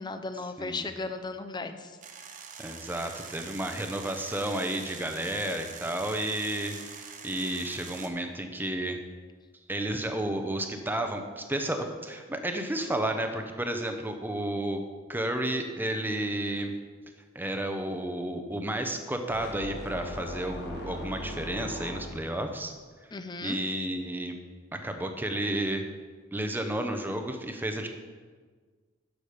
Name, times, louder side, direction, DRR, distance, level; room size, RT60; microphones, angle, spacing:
voice 1, 0.0-2.0 23.1-23.6, left 3 dB, 20° left, 9 dB, 0.6 m, -36 dB
sound 1, 2.0-8.1, right 6 dB, 40° right, 1.0 m, -44 dB
voice 2, 2.6-9.0 9.7-14.8 15.1-16.7 17.3-22.7 23.4-24.4 24.7-25.9 26.3-27.9, right 1 dB, 10° right, 6 dB, 0.8 m, -32 dB
sound 2, 19.3-22.5, left 1 dB, 60° left, 1.5 m, -39 dB
12.0 x 6.4 x 5.0 m, 1.5 s
head